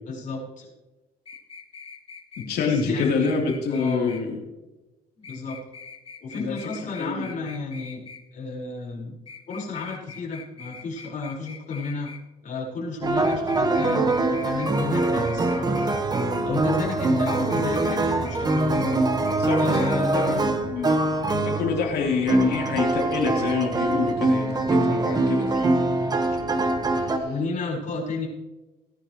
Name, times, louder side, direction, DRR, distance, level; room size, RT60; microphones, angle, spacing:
voice 1, 0.1-0.7 2.6-3.3 3.7-4.2 5.2-5.6 6.2-8.0 8.3-9.2 9.5-12.1 12.4-15.8 16.4-19.0 19.6-20.4 24.7-25.3 27.2-28.3, left 3 dB, 50° left, -3 dB, 4.9 m, -32 dB
sound 1, 1.3-4.2 5.2-8.2 9.3-12.2 13.2-16.3 17.2-18.0 18.2-19.0 19.3-20.0 20.2-20.3, left 5 dB, 30° left, 1.5 m, -43 dB
voice 2, 2.5-4.4 6.3-6.6 7.0-7.3 19.4-20.4 20.7-21.0 21.3-26.1 27.0-27.3, left 5 dB, 70° left, 0 dB, 3.5 m, -27 dB
sound 2, 13.0-27.2, right 2 dB, 25° right, 1.3 m, -23 dB
18.5 x 10.5 x 3.1 m, 1.1 s
cardioid pair, 110°, 17 cm